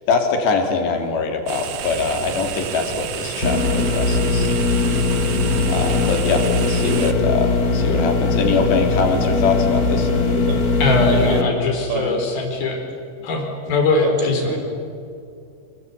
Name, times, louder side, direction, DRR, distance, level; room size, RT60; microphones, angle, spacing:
voice 1, 0.1-4.5 5.7-10.1, left 4 dB, 75° left, 4 dB, 5.2 m, -22 dB
sound 1, 1.5-7.1, right 8 dB, 65° right, 1.8 m, -30 dB
sound 2, 3.4-11.4, left 3 dB, 35° left, 1.6 m, -20 dB
voice 2, 10.1-10.6 11.3-11.5 11.9-12.1 14.0-14.6, right 4 dB, 85° right, 3 dB, 7.3 m, -28 dB
voice 3, 10.8-12.8 13.2-14.6, left 3 dB, 60° left, 2 dB, 6.3 m, -21 dB
28.0 x 23.5 x 8.7 m, 2.4 s
omnidirectional pair, 4.9 m